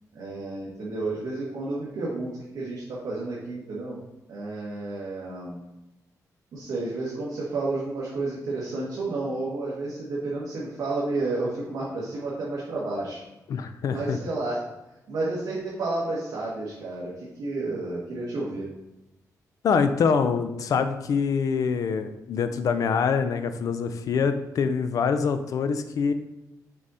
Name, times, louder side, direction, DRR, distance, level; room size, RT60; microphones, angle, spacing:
voice 1, 0.1-4.0 4.3-5.6 6.5-13.2 13.9-14.6 15.1-18.7, right 2 dB, 65° right, -6 dB, 1.5 m, -31 dB
voice 2, 13.5-14.2 19.6-26.1, left 6 dB, 60° left, 10 dB, 0.5 m, -25 dB
6.2 x 4.0 x 4.2 m, 0.98 s
wide cardioid pair, 160°, 7 cm